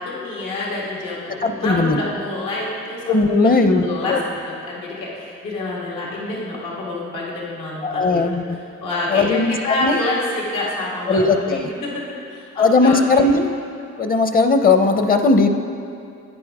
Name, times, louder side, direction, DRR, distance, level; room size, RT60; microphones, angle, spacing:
voice 1, 0.0-3.1 3.4-4.4 4.7-8.2 8.8-12.0 12.3-13.3, left 2 dB, 80° left, -5 dB, 2.2 m, -27 dB
voice 2, 1.4-2.0 3.1-4.2 7.8-8.6 9.1-10.0 11.1-11.7 12.6-13.5 14.0-15.5, left 3 dB, 30° left, 7 dB, 0.7 m, -17 dB
11.5 x 9.3 x 3.6 m, 2.5 s
cardioid pair, 90°, 30 cm